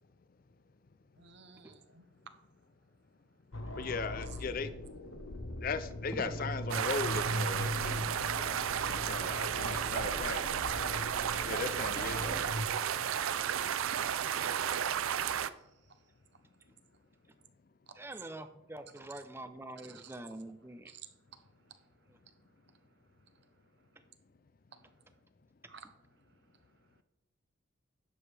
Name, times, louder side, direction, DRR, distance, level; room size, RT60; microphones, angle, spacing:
voice 1, 1.2-2.1 8.2-8.3 9.8-9.9 13.6-16.0 17.9-18.0 19.9-20.2 20.9-22.5 22.8-22.9 23.3-23.6 23.9-24.1 24.7-25.0 25.7-27.0, right 7 dB, 55° right, 9 dB, 0.9 m, -58 dB
Stranded on Planet X, 3.5-12.7, left 1 dB, 75° left, 1.1 m, -40 dB
voice 2, 3.8-4.7 5.6-8.0 8.7-10.4 11.5-12.4, left 4 dB, 45° left, 11 dB, 0.5 m, -38 dB
voice 3, 6.1-6.5 18.0-20.9, right 1 dB, 10° right, 10 dB, 0.6 m, -45 dB
sound 1, 6.7-15.5, right 9 dB, 80° right, 0.4 m, -33 dB
11.0 x 7.6 x 3.4 m, 0.90 s
head